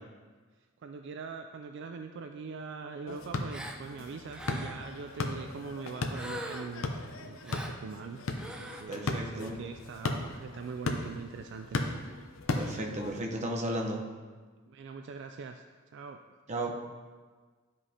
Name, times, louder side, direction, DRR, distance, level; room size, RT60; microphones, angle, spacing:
voice 1, 0.8-8.2 8.6-11.8 12.6-12.8 14.7-15.6 15.9-16.2, right 5 dB, 60° right, 6 dB, 0.3 m, -42 dB
sound 1, 3.1-13.2, left 2 dB, 85° left, 0.7 m, -37 dB
Gasp, 3.5-3.8 4.3-4.9 6.1-6.8 7.4-7.8 8.3-8.8, equal, 5° right, 0.5 m, -41 dB
voice 2, 8.9-9.6 12.5-14.0 16.5-16.8, right 1 dB, 35° right, 0 dB, 0.8 m, -34 dB
11.0 x 5.2 x 2.8 m, 1.4 s
head